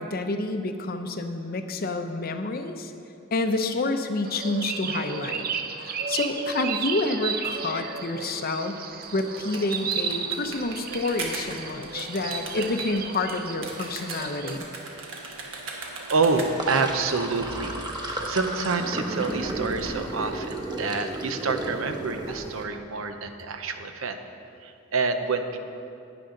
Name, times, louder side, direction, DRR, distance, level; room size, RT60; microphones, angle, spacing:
voice 1, 0.0-2.9 3.3-5.5 5.8-8.8 9.1-14.7, left 2 dB, 50° left, 7 dB, 0.7 m, -28 dB
sound 1, 4.3-14.6, right 6 dB, 50° right, 0.6 m, -33 dB
sound 2, 8.9-16.8, right 3 dB, 70° right, 1.6 m, -38 dB
voice 2, 14.9-24.2 24.6-25.6, right 4 dB, 90° right, 7 dB, 0.7 m, -28 dB
Sink (filling or washing), 16.4-22.6, right 2 dB, 20° right, 1.0 m, -33 dB
12.0 x 9.9 x 3.9 m, 2.5 s
head